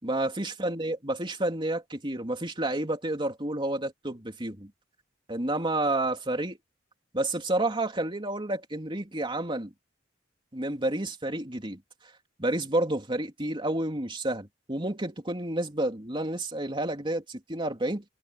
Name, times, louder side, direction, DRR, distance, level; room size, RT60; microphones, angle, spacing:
voice 1, 0.0-4.7 5.3-6.6 7.1-9.7 10.5-11.8 12.4-18.0, right 1 dB, 25° right, 3.4 m, -30 dB
head